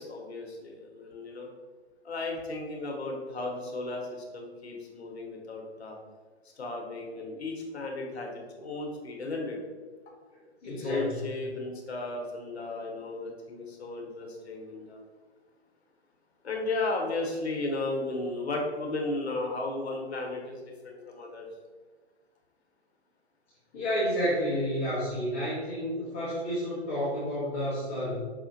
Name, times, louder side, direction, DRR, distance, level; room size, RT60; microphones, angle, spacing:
voice 1, 0.0-1.5 2.0-6.0 6.6-9.6 10.8-15.0 16.4-21.5, left 2 dB, 65° left, 1 dB, 0.8 m, -35 dB
voice 2, 10.6-11.3 23.7-28.2, equal, 15° left, -11 dB, 0.4 m, -30 dB
4.9 x 2.4 x 2.6 m, 1.4 s
figure-of-eight pair, 125°, 34 cm